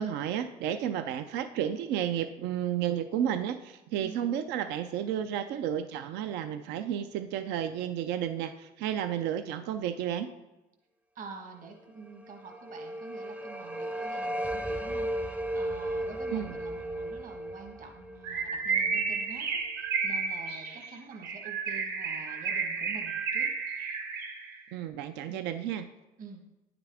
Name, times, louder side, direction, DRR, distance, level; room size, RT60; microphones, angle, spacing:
voice 1, 0.0-10.3 16.3-16.6 24.7-25.9, right 10 dB, 90° right, 9 dB, 0.4 m, -32 dB
voice 2, 4.0-4.4 11.1-19.7 20.0-23.5 25.3-25.5 26.2-26.4, right 4 dB, 50° right, 3 dB, 1.3 m, -47 dB
sound 1, 12.2-19.2, right 1 dB, 10° right, 0.4 m, -35 dB
Bird, 18.2-24.6, right 5 dB, 70° right, 1.1 m, -32 dB
9.4 x 5.9 x 3.4 m, 1.0 s
cardioid pair, 110°, 17 cm